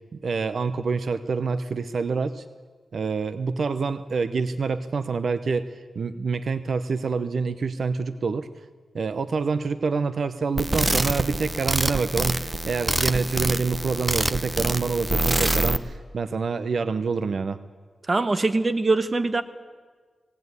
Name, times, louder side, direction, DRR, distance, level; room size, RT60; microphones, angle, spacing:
voice 1, 0.1-2.4 2.9-8.5 8.9-17.6, right 4 dB, 65° right, 11 dB, 0.8 m, -27 dB
sound 1, 10.6-15.8, right 2 dB, 20° right, 0.9 m, -25 dB
voice 2, 18.1-19.4, right 3 dB, 35° right, 11 dB, 1.2 m, -22 dB
19.5 x 17.5 x 9.5 m, 1.5 s
wide cardioid pair, 95°, 0 cm